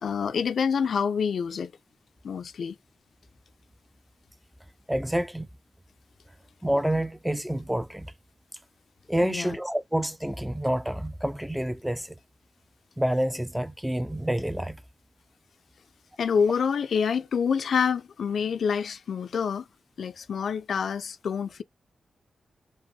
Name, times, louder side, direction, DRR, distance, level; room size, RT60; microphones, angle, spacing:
voice 1, 0.0-1.7 2.2-2.7 9.2-9.6 16.2-19.6 20.0-21.6, left 6 dB, 75° left, 0.4 m, -27 dB
voice 2, 4.9-5.5 6.6-8.1 9.1-12.2 13.0-14.8, right 1 dB, 5° right, 0.4 m, -28 dB
5.2 x 2.0 x 2.7 m
cardioid pair, 55°, 0 cm